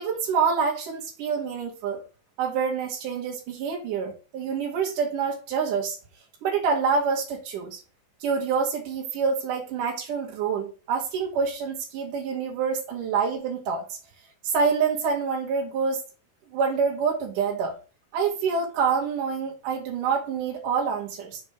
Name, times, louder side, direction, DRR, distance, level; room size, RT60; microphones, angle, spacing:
voice 1, 0.0-2.0 2.4-6.0 6.4-7.8 8.2-14.0 14.4-16.0 16.5-17.8 18.1-21.4, right 5 dB, 75° right, -2 dB, 3.0 m, -26 dB
6.4 x 5.6 x 4.8 m, 0.33 s
omnidirectional pair, 3.8 m